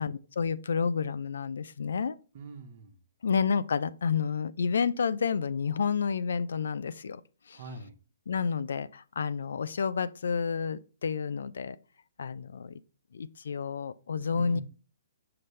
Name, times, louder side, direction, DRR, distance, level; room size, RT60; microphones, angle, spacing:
voice 1, 0.0-2.2 3.2-7.2 7.5-7.6 8.3-11.8 12.2-12.7 13.1-14.6, left 6 dB, 75° left, 0.4 m, -30 dB
voice 2, 2.3-3.0 7.5-8.0 14.3-14.6, right 4 dB, 50° right, 1.1 m, -43 dB
5.8 x 5.3 x 3.2 m
hypercardioid pair, 135°, 0 cm